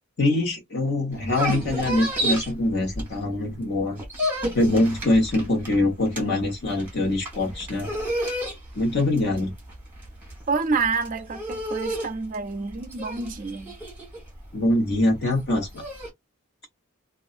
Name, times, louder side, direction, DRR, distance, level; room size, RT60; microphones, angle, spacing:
voice 1, 0.2-4.0 4.5-7.9 8.7-9.5 14.5-15.8, left 1 dB, 50° left, 1.2 m, -23 dB
sound 1, 1.1-3.5 3.8-16.1, equal, 10° right, 1.1 m, -31 dB
voice 2, 10.5-13.7, right 4 dB, 35° right, 0.4 m, -28 dB
2.6 x 2.4 x 2.4 m
head